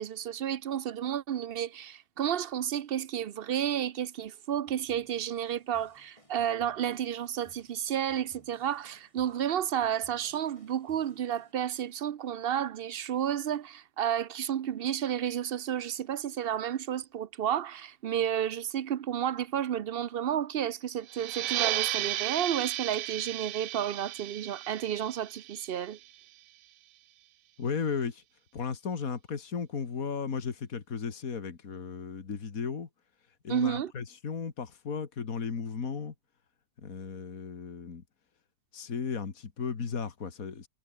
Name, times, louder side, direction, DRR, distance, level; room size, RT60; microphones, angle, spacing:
voice 1, 0.0-26.0 33.5-33.9, right 10 dB, 55° right, 0.7 m, -31 dB
sound 1, 4.7-11.5, left 1 dB, 20° left, 5.1 m, -61 dB
sound 2, 21.1-26.3, right 14 dB, 75° right, 1.0 m, -34 dB
voice 2, 27.6-28.2 28.5-32.9 33.4-36.1 36.8-38.0 38.7-40.7, left 5 dB, 75° left, 2.4 m, -35 dB
omnidirectional pair, 1.5 m